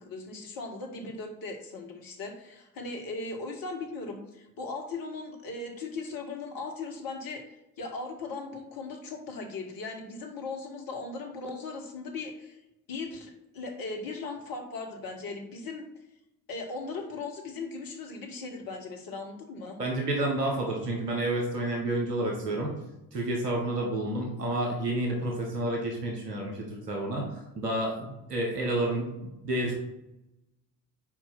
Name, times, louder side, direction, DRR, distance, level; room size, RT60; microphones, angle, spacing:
voice 1, 0.0-12.6 12.9-15.9 16.5-19.8, left 3 dB, 45° left, 3 dB, 1.5 m, -38 dB
voice 2, 19.8-22.7 23.1-29.8, right 1 dB, 85° right, 0 dB, 1.1 m, -30 dB
4.7 x 4.6 x 5.7 m, 0.92 s
figure-of-eight pair, 50°, 47 cm